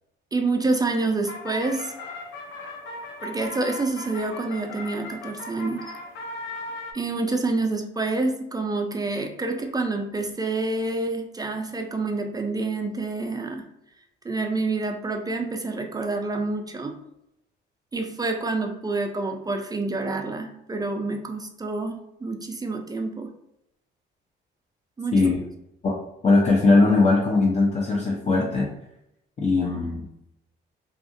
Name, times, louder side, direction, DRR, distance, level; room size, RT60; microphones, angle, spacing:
voice 1, 0.3-1.9 3.2-5.8 6.9-13.7 14.2-16.9 17.9-23.3 25.0-25.3, right 3 dB, 20° right, 3 dB, 0.3 m, -27 dB
sound 1, 0.8-6.9, left 2 dB, 80° left, 0.5 m, -38 dB
voice 2, 25.1-25.4 25.8-25.9 26.2-28.7 29.4-30.1, left 3 dB, 35° left, -4 dB, 0.6 m, -20 dB
2.7 x 2.5 x 2.5 m, 0.82 s
cardioid pair, 90°, 20 cm